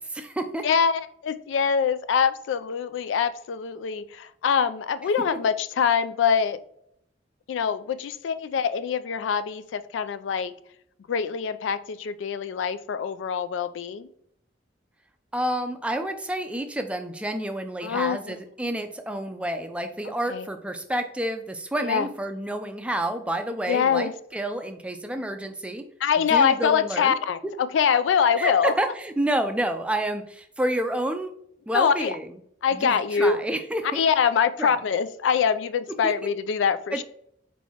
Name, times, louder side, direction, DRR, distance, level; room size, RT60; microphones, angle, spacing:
voice 1, 0.0-0.7 15.3-25.8 26.3-27.1 28.3-31.3 31.7-32.3 32.7-34.0 34.6-34.8 36.0-36.3 36.9-37.0, right 1 dB, 5° right, 6 dB, 0.4 m, -29 dB
voice 2, 0.6-6.6 7.5-10.5 11.1-14.1 17.8-18.3 20.3-20.4 21.8-22.1 23.7-24.1 26.0-28.7 31.7-32.2 32.6-33.4 33.9-37.0, left 7 dB, 80° left, 13 dB, 0.3 m, -24 dB
4.5 x 4.2 x 2.8 m, 0.69 s
head